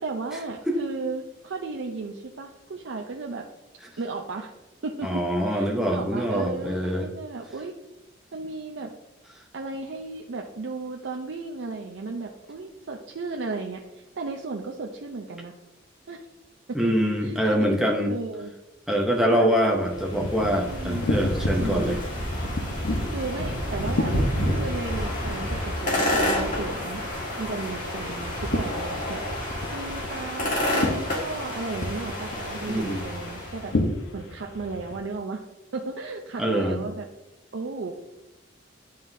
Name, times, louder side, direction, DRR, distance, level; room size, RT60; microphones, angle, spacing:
voice 1, 0.0-3.5 4.0-4.5 4.8-7.7 8.3-8.9 9.5-15.5 16.1-16.2 16.7-17.7 18.1-18.5 19.2-19.7 20.6-21.0 21.6-22.0 23.1-24.1 24.5-27.0 27.4-29.2 29.7-33.7 34.1-35.4 35.7-37.1 37.5-37.9, right 3 dB, 65° right, 1 dB, 0.5 m, -34 dB
voice 2, 5.0-7.1 16.7-18.1 18.9-22.0 32.7-33.0 36.4-36.8, equal, ahead, 0 dB, 0.6 m, -24 dB
sound 1, 19.7-33.7, left 1 dB, 40° left, 1.7 m, -29 dB
sound 2, 19.9-35.0, left 1 dB, 75° left, 0.8 m, -34 dB
9.2 x 3.9 x 2.6 m, 0.99 s
head